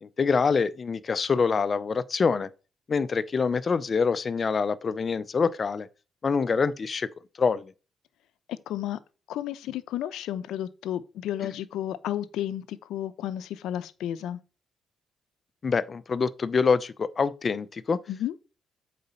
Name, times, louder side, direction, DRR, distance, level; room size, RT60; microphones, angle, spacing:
voice 1, 0.0-2.5 2.9-5.9 6.2-7.1 7.4-7.7 15.6-18.0, left 5 dB, 40° left, 0.6 m, -25 dB
voice 2, 8.5-9.0 9.3-14.4 18.1-18.3, left 11 dB, 85° left, 0.6 m, -32 dB
7.9 x 4.1 x 5.6 m
cardioid pair, 90°, 0 cm